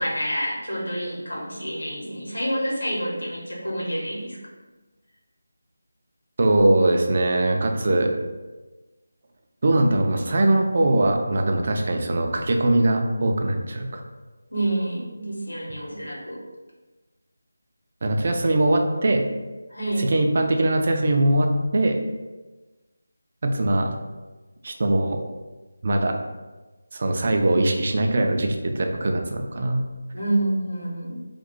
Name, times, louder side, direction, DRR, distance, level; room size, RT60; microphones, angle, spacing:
voice 1, 0.0-4.4 14.5-16.4 19.7-20.1 30.1-31.2, right 1 dB, 75° left, -4 dB, 1.1 m, -28 dB
voice 2, 6.4-8.1 9.6-14.0 18.0-19.2 20.0-21.9 23.4-24.0 24.6-25.2 25.8-26.2 26.9-29.8, right 1 dB, 40° right, 3 dB, 0.4 m, -21 dB
2.6 x 2.3 x 3.9 m, 1.2 s
figure-of-eight pair, 160°, 0 cm